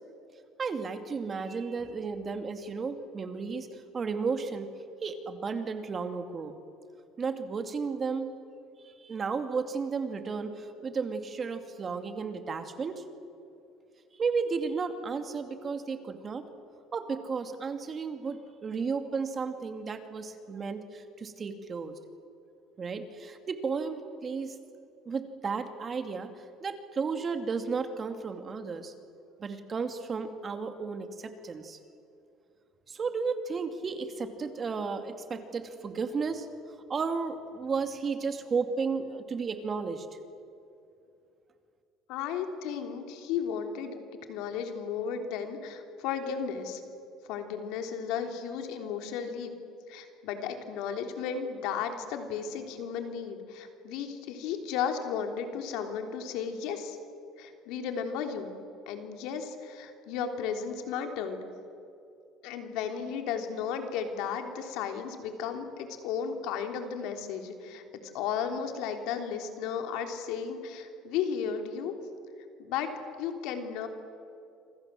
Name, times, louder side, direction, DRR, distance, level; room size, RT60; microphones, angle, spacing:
voice 1, 0.6-4.7 5.0-6.5 7.2-8.3 9.0-13.0 14.2-16.5 16.9-21.9 22.8-24.6 25.1-26.3 26.6-28.9 29.4-31.8 32.9-36.5 36.9-40.1, right 5 dB, 30° right, 7 dB, 2.4 m, -33 dB
voice 2, 42.1-44.0 44.3-46.8 47.3-49.5 49.9-57.0 57.4-58.5 58.9-61.4 62.4-67.8 68.1-71.9 72.6-72.9 73.2-73.9, left 7 dB, 80° left, 5 dB, 3.4 m, -34 dB
27.5 x 25.5 x 7.7 m, 2.6 s
cardioid pair, 125°, 0 cm